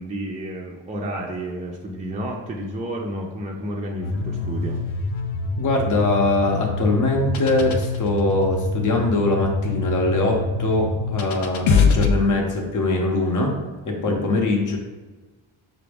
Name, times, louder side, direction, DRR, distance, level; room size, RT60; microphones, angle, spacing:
voice 1, 0.0-4.8 14.1-14.2, right 1 dB, 15° right, -1 dB, 0.4 m, -31 dB
sound 1, 4.0-12.1, left 4 dB, 85° left, 0.6 m, -25 dB
voice 2, 5.6-13.5 13.8-14.8, left 2 dB, 40° left, 0 dB, 0.8 m, -22 dB
5.8 x 2.0 x 3.4 m, 1.3 s
cardioid pair, 100°, 46 cm